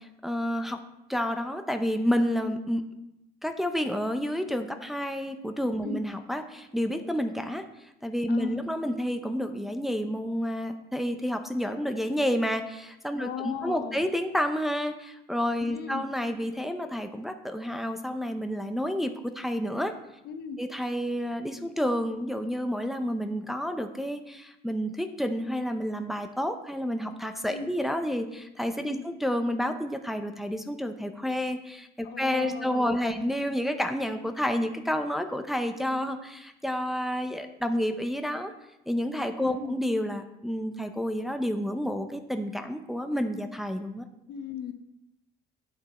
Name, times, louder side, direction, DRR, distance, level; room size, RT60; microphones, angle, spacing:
voice 1, 0.2-0.8 1.1-2.8 3.4-7.6 8.0-19.9 20.6-38.5 38.9-44.0, equal, ahead, 6 dB, 0.7 m, -30 dB
voice 2, 8.3-8.6 13.2-14.0 15.7-16.0 20.2-20.6 27.5-27.7 28.8-29.1 32.0-33.2 39.4-39.8 44.3-44.7, left 7 dB, 70° left, 7 dB, 1.0 m, -38 dB
9.2 x 6.8 x 4.2 m, 0.86 s
cardioid pair, 110°, 17 cm